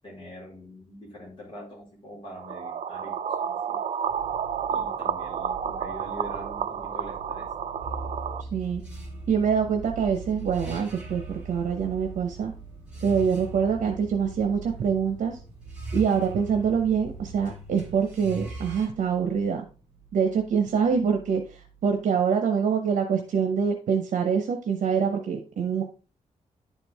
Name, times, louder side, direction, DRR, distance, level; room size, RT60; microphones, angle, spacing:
voice 1, 0.0-3.8 4.7-7.5, equal, 40° left, -4 dB, 4.3 m, -43 dB
sound 1, 2.4-8.4, right 8 dB, 65° right, 0.5 m, -31 dB
sound 2, 4.1-22.0, right 7 dB, 40° right, 2.1 m, -47 dB
sound 3, 7.8-18.9, right 1 dB, 10° right, 2.5 m, -40 dB
voice 2, 8.5-8.8 9.3-12.5 13.0-15.4 15.9-19.7 20.1-25.8, right 6 dB, 85° right, 5 dB, 0.9 m, -25 dB
10.5 x 4.6 x 3.4 m, 0.35 s
wide cardioid pair, 145°, 13 cm